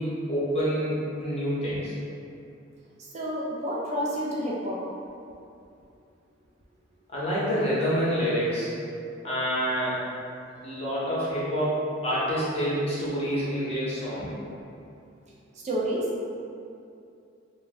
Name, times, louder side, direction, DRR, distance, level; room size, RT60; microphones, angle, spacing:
voice 1, 0.0-1.9 7.1-8.7 9.2-10.0 10.6-14.3, equal, 30° left, -9 dB, 0.7 m, -27 dB
voice 2, 3.0-4.8 15.6-16.3, equal, 35° right, -4 dB, 0.3 m, -29 dB
2.5 x 2.1 x 3.2 m, 2.6 s
head